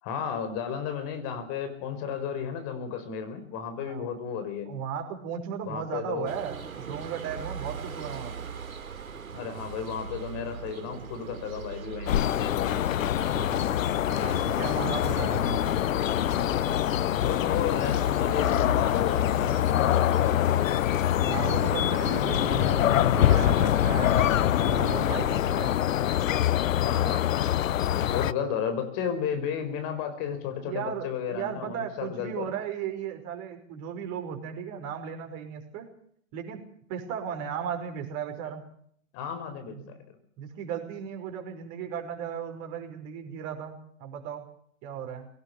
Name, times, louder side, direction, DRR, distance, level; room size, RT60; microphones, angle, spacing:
voice 1, 0.0-4.7 5.6-6.3 9.3-12.8 17.2-21.1 26.8-27.4 28.1-32.5 39.1-40.0, left 7 dB, 40° left, 8 dB, 5.1 m, -33 dB
voice 2, 4.7-8.5 13.2-15.8 21.2-24.3 24.6-25.8 28.0-28.7 30.6-35.9 36.3-36.6 36.9-38.7 39.7-39.8 40.4-44.4 44.8-45.3, right 8 dB, 40° right, 4 dB, 5.5 m, -36 dB
sound 1, 6.3-25.2, right 6 dB, 85° right, 4.1 m, -42 dB
sound 2, 12.1-28.3, left 11 dB, 70° left, 0.8 m, -24 dB
22.5 x 18.5 x 7.1 m, 0.64 s
hypercardioid pair, 120°, 41 cm